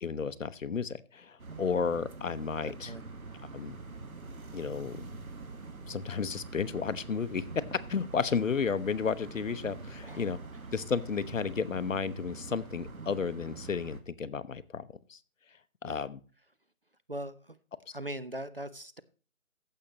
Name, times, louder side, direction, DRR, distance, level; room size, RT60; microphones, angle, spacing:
voice 1, 0.0-2.9 3.5-3.8 4.5-5.1 5.9-10.4 10.7-15.2 15.8-16.2, left 5 dB, 65° left, 15 dB, 0.8 m, -33 dB
sound 1, 1.4-14.0, right 3 dB, 85° right, 1.8 m, -45 dB
voice 2, 2.6-3.0 10.0-10.2 15.8-16.1 17.1-17.6 17.9-19.0, right 1 dB, 45° right, 15 dB, 0.5 m, -40 dB
15.5 x 6.6 x 2.9 m, 0.37 s
hypercardioid pair, 180°, 42 cm